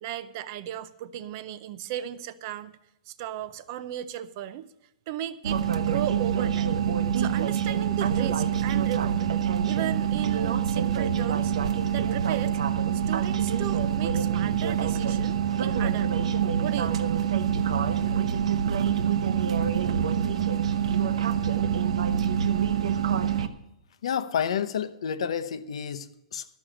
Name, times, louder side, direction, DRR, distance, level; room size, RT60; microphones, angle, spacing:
voice 1, 0.0-2.7 3.1-4.7 5.1-6.7 7.2-9.3 9.6-11.5 11.9-12.6 12.9-16.3 16.6-17.2, right 11 dB, 30° right, 0.5 m, -36 dB
sound 1, 5.4-23.5, right 8 dB, 75° right, 0.9 m, -25 dB
voice 2, 24.0-26.5, left 8 dB, 65° left, 0.8 m, -30 dB
13.0 x 6.2 x 8.7 m
hypercardioid pair, 180°, 3 cm